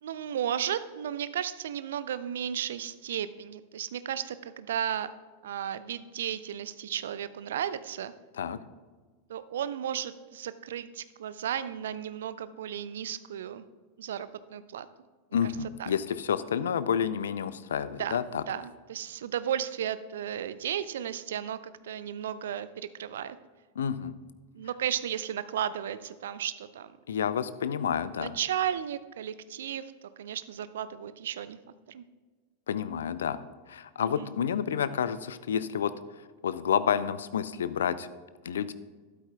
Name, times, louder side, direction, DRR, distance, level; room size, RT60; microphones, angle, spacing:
voice 1, 0.0-5.1 5.4-8.1 9.3-13.6 14.0-14.9 15.4-15.5 15.8-15.9 17.8-18.2 18.5-23.4 24.5-26.9 27.3-27.4 28.2-29.9 30.2-31.6 31.9-32.0 34.0-34.3, right 9 dB, 60° right, 14 dB, 0.5 m, -34 dB
voice 2, 15.3-18.4 23.8-24.1 27.1-28.3 32.7-33.4 33.7-35.9 36.4-38.1 38.4-38.7, left 8 dB, 65° left, 15 dB, 0.4 m, -29 dB
12.5 x 12.0 x 2.3 m, 1.4 s
figure-of-eight pair, 90°, 0 cm